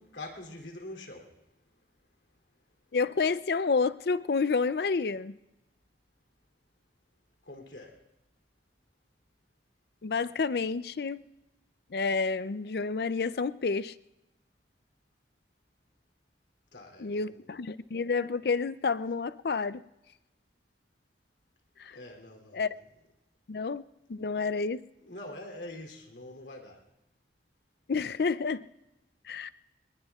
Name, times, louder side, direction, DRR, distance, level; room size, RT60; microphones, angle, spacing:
voice 1, 0.0-1.4 7.4-8.0 16.7-17.4 21.9-22.6 25.0-26.8, left 1 dB, 85° left, 2.9 m, -44 dB
voice 2, 2.9-5.4 10.0-11.3 11.9-13.9 17.0-19.8 21.8-22.0 22.5-22.7 23.5-24.8 27.9-28.6 29.2-29.5, left 4 dB, 65° left, 0.5 m, -29 dB
25.0 x 19.5 x 2.4 m
head